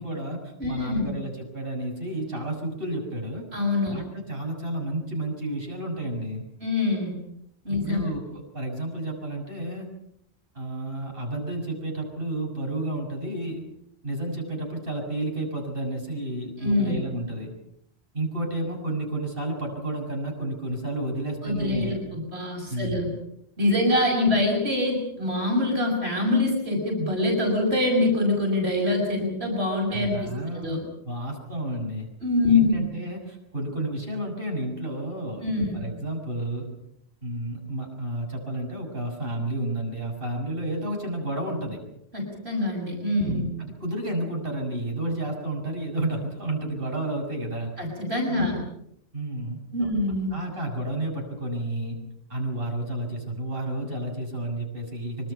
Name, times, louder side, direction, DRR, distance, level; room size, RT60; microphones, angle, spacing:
voice 1, 0.0-3.5 3.9-6.4 7.7-8.2 8.5-9.9 10.6-13.6 14.0-17.5 18.1-22.0 22.7-23.0 29.9-30.7 31.1-32.1 32.5-36.7 37.2-41.8 43.2-47.7 48.3-48.5 49.1-49.9 50.3-52.0 52.3-55.3, right 1 dB, 60° right, 0 dB, 6.9 m, -31 dB
voice 2, 0.6-1.1 3.5-4.0 6.6-7.2 7.6-8.0 16.6-17.0 21.4-23.1 23.6-30.8 32.2-32.8 35.4-35.8 42.1-43.5 47.8-48.6 49.7-50.3, left 2 dB, 80° right, 1 dB, 6.5 m, -24 dB
25.0 x 25.0 x 5.8 m, 0.77 s
omnidirectional pair, 1.1 m